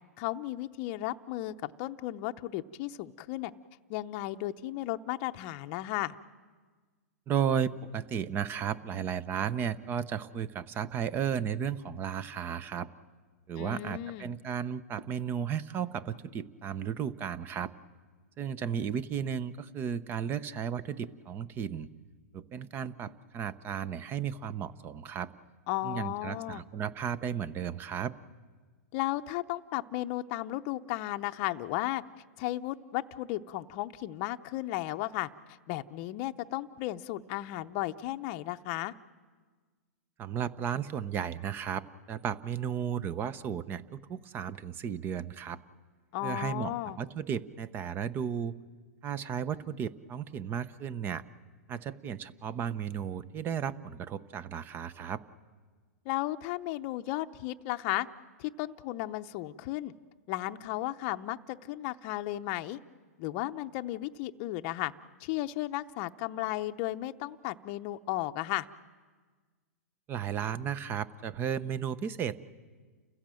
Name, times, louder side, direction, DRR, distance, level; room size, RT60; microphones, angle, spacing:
voice 1, 0.2-3.5 3.9-6.1 13.6-14.3 25.7-26.6 28.9-32.0 32.4-38.9 46.1-47.0 56.0-58.1 58.4-59.9 60.3-62.8 63.2-64.9 65.2-68.7, left 16 dB, 40° left, 7 dB, 0.7 m, -34 dB
voice 2, 7.3-12.9 13.5-17.7 18.4-21.9 22.3-25.3 25.8-28.1 40.2-45.6 46.2-48.5 49.0-51.2 51.7-55.2 70.1-72.4, right 8 dB, 25° right, 17 dB, 0.8 m, -34 dB
30.0 x 16.0 x 7.7 m, 1.5 s
hypercardioid pair, 130°, 8 cm